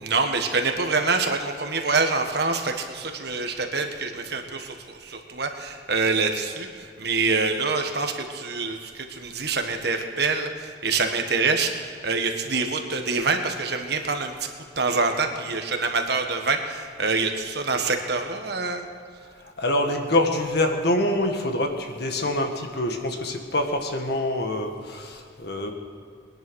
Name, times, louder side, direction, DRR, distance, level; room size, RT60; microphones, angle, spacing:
voice 1, 0.0-14.3 14.7-18.8, right 4 dB, 55° right, 5 dB, 1.6 m, -26 dB
voice 2, 19.6-25.7, left 1 dB, 55° left, 4 dB, 1.8 m, -25 dB
21.5 x 10.5 x 6.4 m, 2.4 s
head